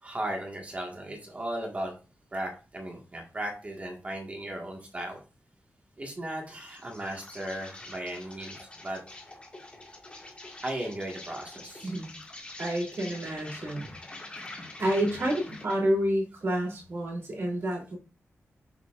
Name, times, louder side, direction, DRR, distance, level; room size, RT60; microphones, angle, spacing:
voice 1, 0.0-1.9 2.3-5.2 6.0-9.0 10.6-11.9, right 1 dB, 30° right, 1 dB, 1.6 m, -36 dB
Insect, 6.5-15.9, left 2 dB, 20° left, 1.8 m, -45 dB
voice 2, 11.8-12.1 12.6-13.9 14.8-18.0, right 1 dB, 55° right, -2 dB, 3.1 m, -29 dB
7.0 x 6.7 x 2.5 m, 0.34 s
wide cardioid pair, 180°, 5 cm